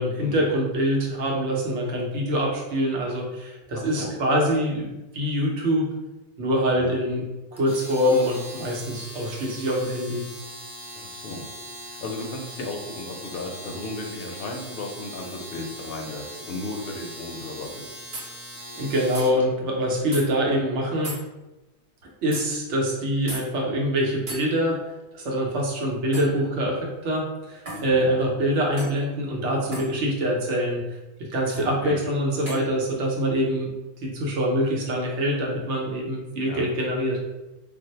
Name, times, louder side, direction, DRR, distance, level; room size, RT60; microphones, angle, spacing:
voice 1, 0.0-5.9 6.4-10.2 18.8-21.2 22.2-24.8 25.1-30.8 31.2-33.7 34.0-37.2, equal, 85° right, -1 dB, 1.0 m, -25 dB
voice 2, 3.7-4.2 6.7-6.9 10.9-11.5 11.8-18.0 27.8-28.1 31.5-32.0 36.5-36.7, left 2 dB, 65° left, 1 dB, 0.7 m, -35 dB
Domestic sounds home sounds, 7.6-19.4, equal, ahead, 0.4 m, -40 dB
blade on wood metal clank tink, 18.1-18.3 19.1-19.3 20.1-20.2 21.0-21.2 22.3-22.4 23.3-23.4 24.3-24.4 26.1-26.4 27.7-27.9 28.8-29.0 29.7-29.9 31.5-31.7 32.5-32.7, right 1 dB, 45° right, 1.1 m, -35 dB
2.5 x 2.0 x 3.9 m, 1.0 s
omnidirectional pair, 1.2 m